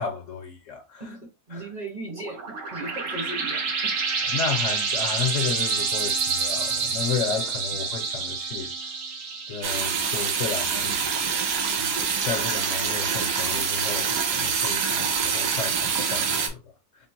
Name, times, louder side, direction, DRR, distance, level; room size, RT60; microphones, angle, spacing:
voice 1, 0.0-1.0 1.5-1.7 4.3-8.7 9.5-11.0 11.8-16.6, left 6 dB, 60° left, 1.1 m, -32 dB
voice 2, 1.0-3.9, right 2 dB, 30° right, 1.0 m, -37 dB
sound 1, 2.1-11.3, right 4 dB, 55° right, 1.0 m, -28 dB
sound 2, 9.6-16.5, right 6 dB, 85° right, 1.4 m, -25 dB
3.6 x 2.2 x 4.4 m
omnidirectional pair, 1.7 m